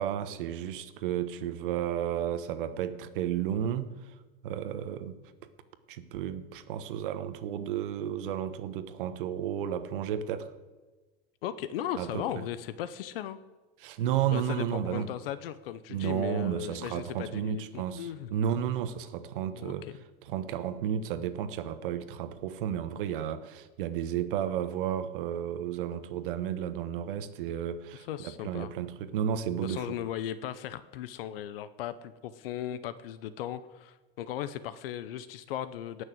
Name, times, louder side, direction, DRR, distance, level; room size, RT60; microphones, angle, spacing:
voice 1, 0.0-3.9 4.4-5.2 5.9-10.5 12.0-12.4 13.8-15.1 15.9-19.9 20.2-30.0, right 9 dB, 60° right, 12 dB, 1.2 m, -32 dB
voice 2, 11.4-13.4 14.3-18.3 19.5-19.9 27.9-28.7 29.6-36.0, left 11 dB, 70° left, 14 dB, 0.7 m, -37 dB
17.5 x 6.5 x 7.8 m, 1.2 s
supercardioid pair, 175°, 29 cm